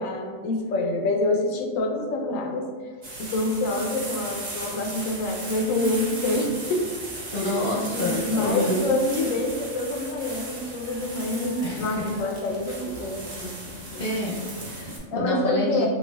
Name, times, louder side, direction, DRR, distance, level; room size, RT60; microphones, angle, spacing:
voice 1, 0.0-2.7 3.2-6.8 7.4-14.1 15.1-15.9, left 2 dB, 80° left, 2 dB, 1.0 m, -27 dB
sound 1, 3.0-15.0, right 2 dB, 40° right, 0.8 m, -36 dB
voice 2, 7.3-8.8 10.6-10.7 11.6-12.1 14.0-15.9, left 1 dB, 50° left, -4 dB, 0.8 m, -28 dB
5.4 x 2.4 x 2.2 m, 1.5 s
omnidirectional pair, 1.4 m